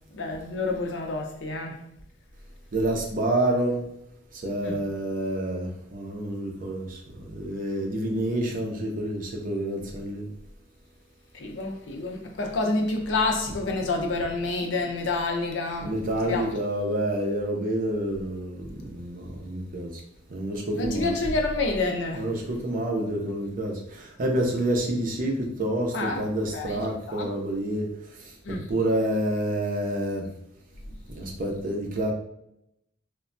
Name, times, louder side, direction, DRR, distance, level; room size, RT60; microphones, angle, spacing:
voice 1, 0.1-1.8 4.6-4.8 11.3-16.5 20.7-22.3 25.9-26.2 26.5-27.3 28.4-28.7, left 3 dB, 70° left, 0.5 m, -28 dB
voice 2, 2.7-3.8 4.3-10.3 15.8-20.0 20.3-21.1 22.2-27.9 28.1-28.3 28.7-30.3 31.1-32.1, right 1 dB, 45° right, 0.6 m, -28 dB
3.2 x 2.1 x 2.5 m
head